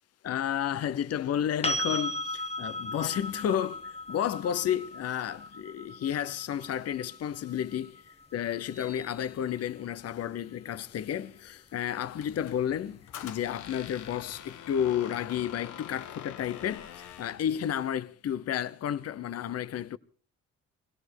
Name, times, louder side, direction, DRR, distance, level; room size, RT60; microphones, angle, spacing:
voice 1, 0.2-20.0, left 10 dB, 55° left, 0.8 m, -32 dB
sound 1, 1.6-9.5 12.3-12.4, left 1 dB, 20° left, 1.4 m, -37 dB
sound 2, 8.6-10.1, left 1 dB, 45° right, 1.8 m, -55 dB
Squeak, 12.2-17.5, left 9 dB, 80° left, 1.2 m, -45 dB
18.0 x 17.5 x 4.7 m
cardioid pair, 90°, 30 cm